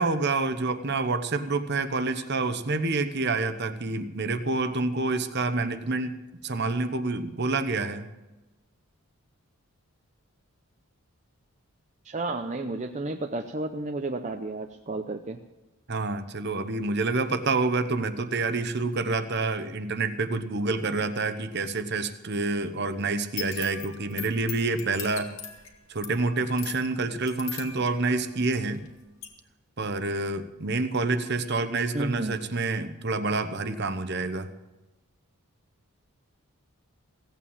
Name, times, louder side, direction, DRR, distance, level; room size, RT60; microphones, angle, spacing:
voice 1, 0.0-6.1 6.4-8.1 15.9-25.3 25.9-28.8 29.8-34.5, right 3 dB, 50° right, 10 dB, 1.0 m, -28 dB
voice 2, 12.0-15.4 31.9-32.4, right 2 dB, 30° right, 4 dB, 0.6 m, -32 dB
sound 1, 23.2-28.9 29.2-29.3, left 8 dB, 60° left, 2.2 m, -40 dB
16.5 x 8.7 x 7.2 m, 1.1 s
head